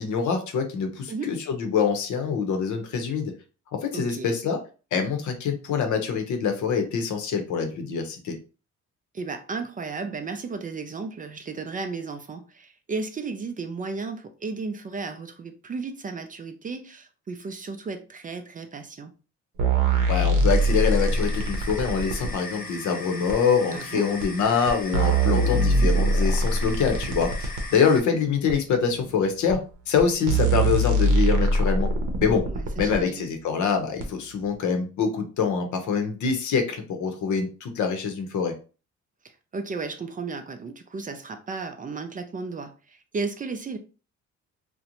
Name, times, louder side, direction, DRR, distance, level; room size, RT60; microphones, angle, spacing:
voice 1, 0.0-3.3 3.8-4.6 4.9-8.4 20.1-29.6 29.9-31.9 32.2-32.4 32.8-38.5, left 6 dB, 75° left, 0.7 m, -25 dB
voice 2, 3.9-4.4 9.1-19.1 23.7-24.2 32.5-33.3 39.5-43.8, right 4 dB, 30° right, 0.4 m, -34 dB
sound 1, 19.6-22.3 23.3-23.4 24.2-24.3 24.7-27.7 28.5-28.6 29.5-29.6 30.0-30.1 30.3-33.0 34.0-34.1, right 2 dB, 85° right, 0.6 m, -22 dB
sound 2, 20.5-28.0, left 3 dB, 30° left, 0.7 m, -39 dB
2.5 x 2.1 x 2.8 m
cardioid pair, 90°, 30 cm